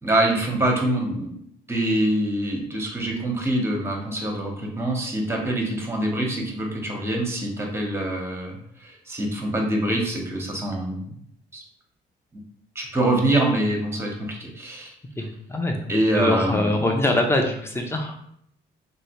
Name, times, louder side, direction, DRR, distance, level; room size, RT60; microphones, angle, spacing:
voice 1, 0.0-1.4 1.7-11.2 11.5-11.6 12.3-12.4 12.7-14.9 15.9-16.9, right 1 dB, 10° right, 0 dB, 0.9 m, -25 dB
voice 2, 15.2-15.8 16.1-18.2, left 2 dB, 10° left, 3 dB, 0.6 m, -23 dB
3.1 x 2.7 x 3.0 m, 0.69 s
cardioid pair, 90°, 20 cm